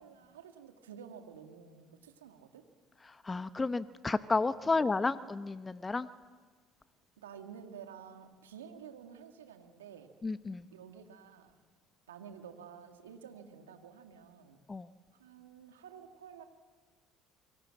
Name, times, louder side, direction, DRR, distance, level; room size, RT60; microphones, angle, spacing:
voice 1, 0.0-2.6 4.6-4.8 7.2-10.1 10.7-11.6 12.1-14.6 15.2-16.4, right 7 dB, 90° right, 5 dB, 2.1 m, -51 dB
voice 2, 3.1-6.1 10.2-10.7 14.7-14.9, left 3 dB, 20° left, 13 dB, 0.9 m, -32 dB
27.0 x 24.0 x 7.7 m, 1.5 s
hypercardioid pair, 65°, 0 cm